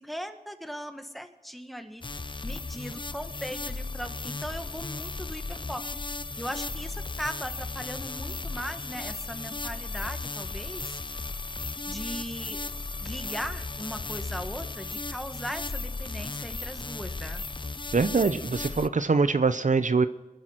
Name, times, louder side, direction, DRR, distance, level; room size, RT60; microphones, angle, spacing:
voice 1, 0.0-2.0 2.4-5.8 6.4-11.0 11.9-12.6 13.0-17.4, equal, ahead, 7 dB, 1.4 m, -38 dB
sound 1, 2.0-18.9, left 3 dB, 35° left, 0.5 m, -35 dB
voice 2, 17.9-20.1, right 4 dB, 60° right, 12 dB, 0.6 m, -23 dB
23.0 x 10.5 x 4.4 m, 1.1 s
wide cardioid pair, 50°, 15 cm